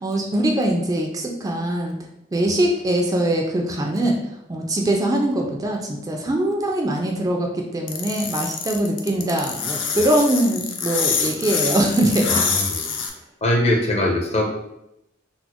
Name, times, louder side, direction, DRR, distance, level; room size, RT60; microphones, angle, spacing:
voice 1, 0.0-2.0 2.3-4.2 4.5-12.3, right 1 dB, 20° right, 1 dB, 0.3 m, -22 dB
sound 1, 7.9-13.1, left 6 dB, 85° left, 0.5 m, -25 dB
voice 2, 12.3-13.0 13.4-14.5, left 1 dB, 35° left, 0 dB, 0.6 m, -22 dB
4.0 x 2.0 x 2.9 m, 0.83 s
head